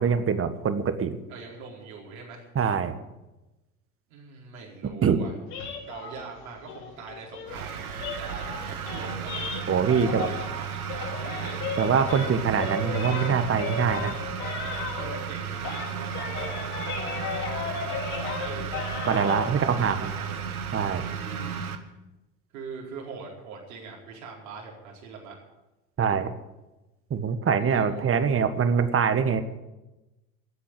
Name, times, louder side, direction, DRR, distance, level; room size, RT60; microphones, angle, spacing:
voice 1, 0.0-1.2 2.5-3.0 5.0-5.2 9.7-10.3 11.8-14.1 19.1-20.1 20.7-21.0 26.0-26.3 27.1-29.4, right 6 dB, 30° right, 10 dB, 1.5 m, -24 dB
voice 2, 1.3-2.5 4.1-5.3 5.8-9.5 9.9-11.8 14.9-17.4 18.1-18.9 19.5-20.5 21.1-21.6 22.5-25.4 27.6-28.2, right 5 dB, 75° right, -2 dB, 4.6 m, -42 dB
sound 1, 5.5-10.6 10.8-15.3 15.6-19.5, left 6 dB, 60° left, 4.1 m, -35 dB
sound 2, 7.5-21.8, right 7 dB, 90° right, 1.2 m, -34 dB
14.0 x 8.5 x 10.0 m, 1.0 s
hypercardioid pair, 70°, 42 cm